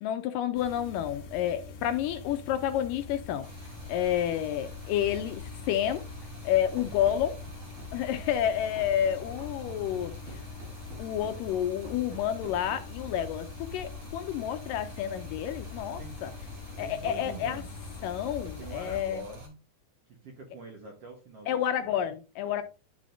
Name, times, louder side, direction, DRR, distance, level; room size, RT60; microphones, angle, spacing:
voice 1, 0.0-3.5 3.9-6.0 6.4-7.4 7.9-10.1 11.0-16.3 16.8-17.6 18.0-19.2 21.5-22.6, left 10 dB, 80° left, 2.0 m, -30 dB
sound 1, 0.5-19.0, left 4 dB, 60° left, 2.3 m, -44 dB
Stream, 3.4-19.5, equal, 40° right, 2.7 m, -48 dB
Run, 6.8-13.4, right 2 dB, 85° right, 3.7 m, -49 dB
voice 2, 16.8-17.8 18.6-19.6 20.1-22.2 22.4-22.6, right 2 dB, 60° right, 1.7 m, -45 dB
11.5 x 4.9 x 2.6 m
omnidirectional pair, 4.2 m